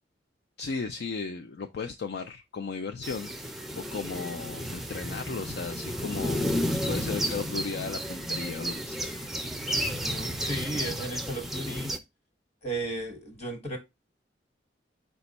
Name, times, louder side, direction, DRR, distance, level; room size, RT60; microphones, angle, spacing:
voice 1, 0.6-9.3, left 4 dB, 65° left, 0.4 m, -36 dB
sound 1, 3.0-12.0, equal, ahead, 0.4 m, -32 dB
voice 2, 10.0-12.0 12.6-13.8, right 1 dB, 35° left, 1.3 m, -35 dB
5.1 x 2.3 x 4.0 m
head